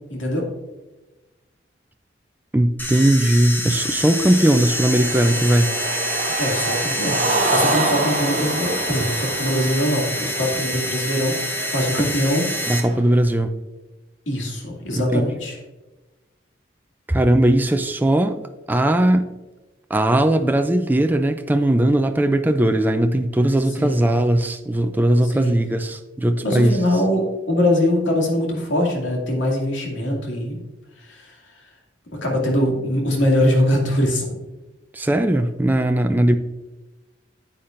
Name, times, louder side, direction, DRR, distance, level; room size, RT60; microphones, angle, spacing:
voice 1, 0.1-0.5 6.4-12.5 14.3-15.6 23.8-24.2 25.2-25.5 26.4-30.6 31.0-31.3 32.2-34.4, left 1 dB, 85° left, 0 dB, 2.4 m, -22 dB
voice 2, 2.5-5.8 12.0-12.1 12.7-13.5 14.9-15.2 17.1-18.4 18.7-19.3 19.9-26.8 34.9-36.4, right 1 dB, 10° right, 7 dB, 0.4 m, -18 dB
sound 1, 2.8-12.8, equal, 10° left, 0.9 m, -27 dB
Cheering, 3.8-13.1, right 2 dB, 40° right, 0.9 m, -28 dB
9.7 x 8.6 x 2.5 m, 1.1 s
head